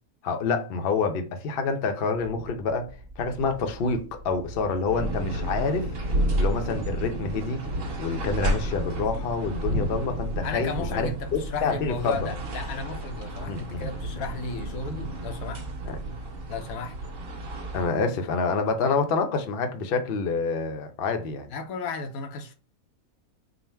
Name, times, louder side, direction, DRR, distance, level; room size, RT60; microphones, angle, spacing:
voice 1, 0.2-5.9 6.4-7.6 8.0-12.3 13.4-13.9 15.9-16.0 17.7-21.5, left 4 dB, 55° left, 0.7 m, -27 dB
sound 1, 2.1-17.9, right 2 dB, 20° right, 0.9 m, -43 dB
sound 2, 4.9-17.9, right 1 dB, 75° right, 1.4 m, -31 dB
voice 2, 10.4-15.6 16.5-16.9 21.5-22.5, left 4 dB, 80° left, 1.1 m, -34 dB
3.8 x 2.1 x 4.4 m
omnidirectional pair, 1.5 m